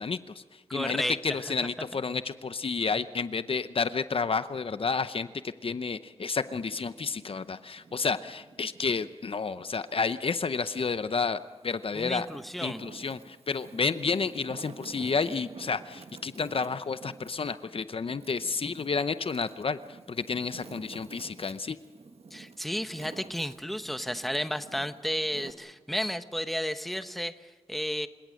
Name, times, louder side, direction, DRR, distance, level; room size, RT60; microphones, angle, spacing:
voice 1, 0.0-12.3 12.6-21.8, left 5 dB, 60° left, 13 dB, 0.7 m, -31 dB
voice 2, 0.7-1.2 11.9-12.8 22.3-28.1, equal, ahead, 10 dB, 1.0 m, -32 dB
Wind, 6.3-9.1 9.6-10.9 11.5-25.5, right 4 dB, 65° right, 1.3 m, -50 dB
28.5 x 17.5 x 6.4 m, 1.3 s
wide cardioid pair, 95°, 11 cm